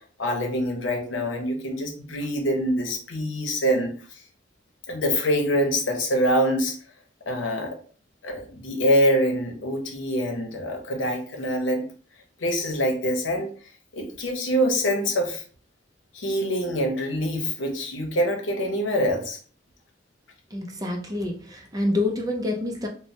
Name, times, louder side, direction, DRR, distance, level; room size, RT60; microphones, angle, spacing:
voice 1, 0.2-3.9 4.9-6.7 7.3-7.8 8.2-11.8 12.4-13.5 13.9-15.4 16.1-19.4, equal, 85° left, 2 dB, 0.8 m, -25 dB
voice 2, 20.5-22.9, left 2 dB, 20° right, 2 dB, 0.4 m, -27 dB
3.1 x 2.1 x 2.7 m, 0.43 s
head